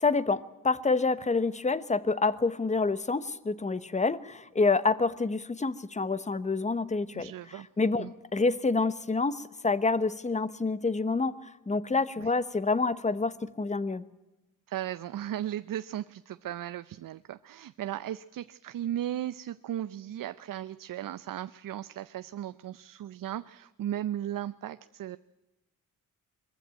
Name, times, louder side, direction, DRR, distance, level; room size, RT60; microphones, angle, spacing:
voice 1, 0.0-7.3 7.8-14.0, left 3 dB, 20° left, 16 dB, 1.0 m, -28 dB
voice 2, 7.1-7.7 8.0-8.1 12.2-12.3 14.7-25.2, right 12 dB, 70° right, 14 dB, 0.6 m, -36 dB
22.5 x 15.0 x 8.9 m, 1.0 s
cardioid pair, 115°, 35 cm